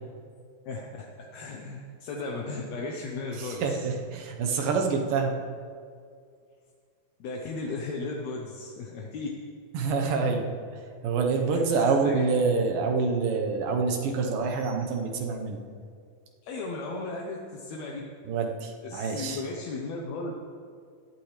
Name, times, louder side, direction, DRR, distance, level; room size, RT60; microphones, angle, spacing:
voice 1, 0.7-3.8 7.2-9.3 11.5-11.6 12.0-12.2 16.4-18.0 18.8-20.3, left 3 dB, 65° left, -1 dB, 1.9 m, -35 dB
voice 2, 3.4-5.3 9.7-10.5 11.0-15.6 18.3-19.4, right 4 dB, 80° right, 2 dB, 2.8 m, -26 dB
17.0 x 12.0 x 3.3 m, 2.2 s
omnidirectional pair, 3.9 m